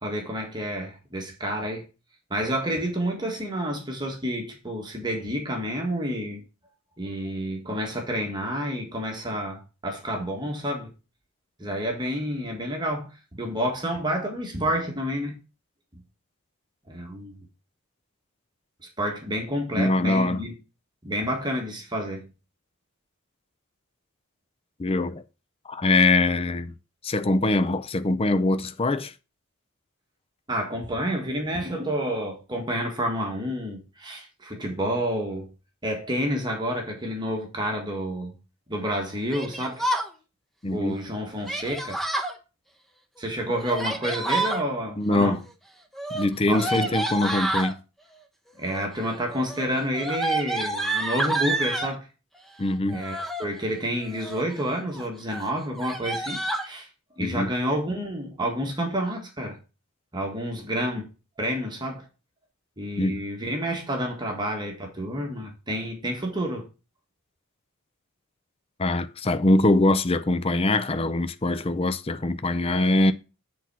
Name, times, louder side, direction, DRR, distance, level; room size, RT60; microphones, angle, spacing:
voice 1, 0.0-1.8 2.3-6.4 7.0-10.9 11.6-15.4 16.9-17.4 19.0-20.5 21.0-22.3 30.5-35.5 35.8-38.3 38.7-39.8 40.7-42.0 43.2-45.4 46.5-46.9 48.6-52.1 52.9-56.9 57.2-59.6 60.1-61.1 61.4-62.0 62.8-66.7, equal, 20° right, 1.6 m, -29 dB
voice 2, 19.8-20.4 24.8-25.2 25.7-26.7 27.0-29.1 40.6-41.0 45.0-45.4 46.1-47.8 52.6-53.0 57.2-57.5 63.0-63.2 68.8-73.1, left 2 dB, 25° left, 0.5 m, -23 dB
Yell, 39.3-40.1 41.4-42.3 43.5-44.6 45.9-47.7 48.6-49.0 49.3-51.9 52.9-53.5 54.0-54.5 54.9-55.1 55.3-55.4 55.7-56.7, right 2 dB, ahead, 1.0 m, -29 dB
8.1 x 4.3 x 6.0 m
head